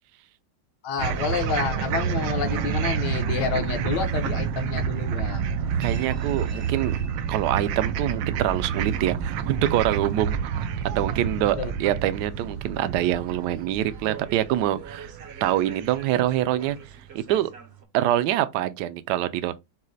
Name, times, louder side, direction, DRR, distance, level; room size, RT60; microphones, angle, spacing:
voice 1, 0.8-5.7 11.6-11.7, left 6 dB, 70° left, 1.5 m, -29 dB
sound 1, 1.0-16.4, right 7 dB, 90° right, 1.4 m, -29 dB
sound 2, 1.7-17.9, right 7 dB, 50° right, 0.8 m, -47 dB
voice 2, 5.8-6.9 7.3-10.4 10.9-15.1 15.4-16.8 17.1-17.5 17.9-19.6, right 13 dB, 75° right, 1.1 m, -25 dB
6.2 x 2.1 x 3.9 m
omnidirectional pair, 2.0 m